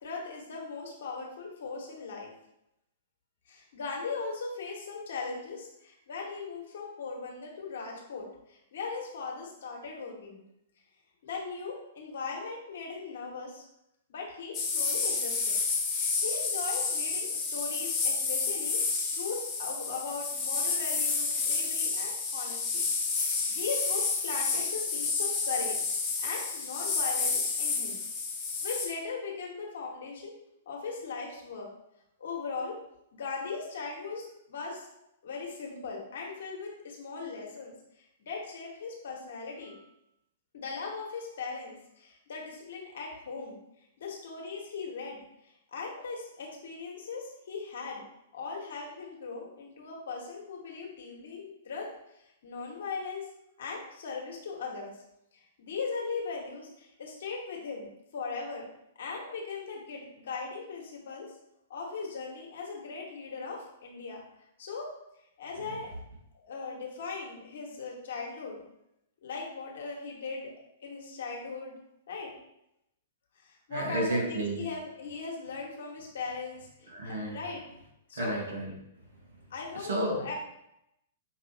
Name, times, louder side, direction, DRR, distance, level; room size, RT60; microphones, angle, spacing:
voice 1, 0.0-2.3 3.5-10.4 11.2-13.6 14.1-15.6 15.9-18.8 19.1-22.8 23.1-28.0 28.6-30.3 30.7-31.7 32.2-32.8 33.1-34.9 35.2-39.8 40.5-43.6 44.0-45.2 45.4-48.0 48.3-53.3 53.6-54.9 55.3-58.6 59.0-61.3 61.7-64.2 64.6-64.9 65.4-65.9 66.4-68.6 69.2-70.5 70.8-71.7 72.1-72.3 73.4-77.6 78.1-78.4 79.5-80.3, left 4 dB, 60° left, -1 dB, 1.3 m, -39 dB
sound 1, 14.5-28.9, left 4 dB, 25° left, 1.3 m, -30 dB
voice 2, 73.7-74.7 76.9-77.4 78.1-79.4 79.7-80.3, right 1 dB, 65° right, -1 dB, 1.4 m, -33 dB
5.7 x 3.0 x 2.9 m, 0.83 s
figure-of-eight pair, 110°, 0 cm